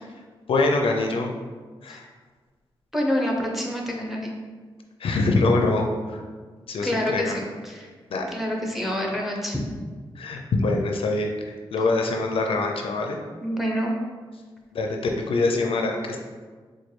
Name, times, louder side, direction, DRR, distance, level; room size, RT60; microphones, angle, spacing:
voice 1, 0.5-1.3 1.8-2.0 5.0-6.2 6.7-7.4 8.1-8.2 10.2-11.3 11.7-13.2 14.7-15.0 15.3-16.2, left 3 dB, 75° left, 2 dB, 0.4 m, -24 dB
voice 2, 2.9-4.3 6.8-7.9 8.3-9.6 13.4-13.9, equal, 5° right, -1 dB, 0.7 m, -27 dB
4.4 x 2.3 x 3.1 m, 1.5 s
cardioid pair, 75°, 9 cm